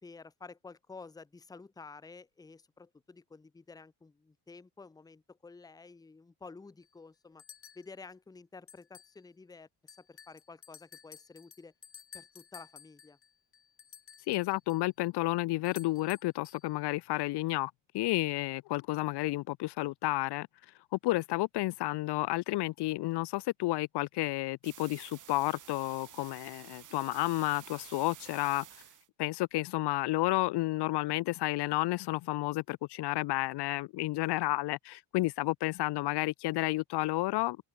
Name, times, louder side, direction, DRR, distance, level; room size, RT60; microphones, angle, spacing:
voice 1, 0.0-7.4 7.7-11.7 12.1-13.2, left 4 dB, 10° left, 1.0 m, -51 dB
sound 1, 6.8-6.9 7.4-7.9 8.7-9.2 9.5-9.6 9.9-14.8 15.6-16.7, left 7 dB, 25° left, 4.7 m, -54 dB
voice 2, 14.3-20.5 20.9-28.6 29.2-37.6, left 19 dB, 55° left, 0.9 m, -31 dB
sound 2, 24.6-29.1, right 11 dB, 40° right, 3.4 m, -51 dB
open air
cardioid pair, 165°, 48 cm